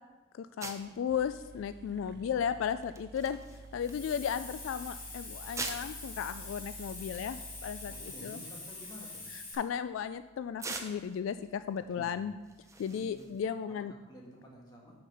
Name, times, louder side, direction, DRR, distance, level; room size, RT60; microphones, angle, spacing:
voice 1, 0.3-3.4 3.7-8.4 9.5-12.3 12.8-13.9, left 8 dB, 75° left, 12 dB, 0.3 m, -35 dB
sound 1, 0.6-13.4, right 3 dB, 15° right, 0.7 m, -48 dB
sound 2, 0.8-0.9 1.1-8.9, right 2 dB, 55° right, 0.4 m, -50 dB
voice 2, 2.1-2.4 7.8-9.3 11.9-12.3 12.8-13.4 13.7-14.9, equal, 20° left, -2 dB, 1.7 m, -52 dB
Hiss, 3.8-9.5, left 3 dB, 45° left, 2.5 m, -45 dB
7.2 x 5.9 x 5.4 m, 1.2 s
head